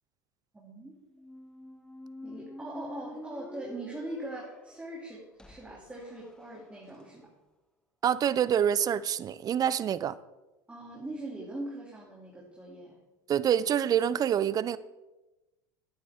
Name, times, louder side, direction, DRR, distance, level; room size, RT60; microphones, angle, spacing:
voice 1, 0.5-0.9 2.2-7.3 10.7-13.0, right 1 dB, 10° right, -4 dB, 2.7 m, -41 dB
Squeak, 1.1-7.1, left 2 dB, 5° left, 0.7 m, -48 dB
voice 2, 8.0-10.1 13.3-14.8, right 9 dB, 35° right, 17 dB, 0.6 m, -26 dB
11.5 x 9.8 x 3.7 m, 1.1 s
hypercardioid pair, 95°, 11 cm